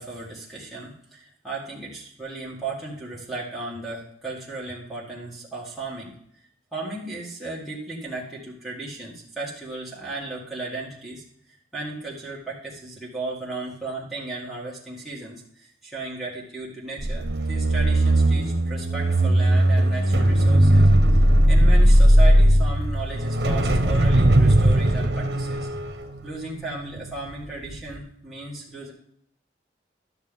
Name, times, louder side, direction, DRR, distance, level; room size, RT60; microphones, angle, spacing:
voice 1, 0.0-6.1 6.7-11.2 11.7-25.7 26.2-28.9, right 3 dB, ahead, -7 dB, 1.9 m, -35 dB
sound 1, 17.0-27.3 27.7-27.9, right 1 dB, 65° right, 1.0 m, -18 dB
12.0 x 6.7 x 3.6 m, 0.68 s
head